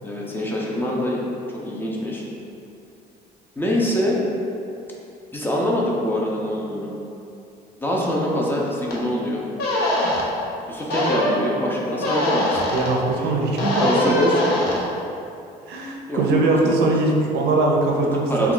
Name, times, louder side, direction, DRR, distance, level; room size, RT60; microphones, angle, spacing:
voice 1, 0.0-2.2 3.6-4.2 5.3-6.9 7.8-9.4 10.7-12.6 13.1-13.3 13.8-14.5 16.1-17.2 18.3-18.5, left 1 dB, 10° left, -4 dB, 0.4 m, -24 dB
sound 1, 8.9-9.0 9.6-10.2 10.9-11.4 12.0-12.9 13.6-14.8, left 1 dB, 70° left, 0.7 m, -22 dB
voice 2, 12.7-14.3 15.7-18.5, right 2 dB, 75° right, 0 dB, 0.4 m, -21 dB
2.3 x 2.3 x 3.6 m, 2.6 s
cardioid pair, 110°, 17 cm